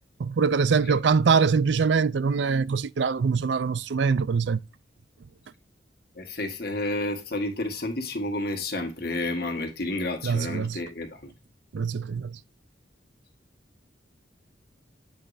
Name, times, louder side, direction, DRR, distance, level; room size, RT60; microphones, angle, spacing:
voice 1, 0.2-4.6 10.2-10.8 11.7-12.4, right 5 dB, 75° right, 0.4 m, -23 dB
voice 2, 6.1-11.3, left 2 dB, 55° left, 1.5 m, -31 dB
7.8 x 5.0 x 2.6 m
head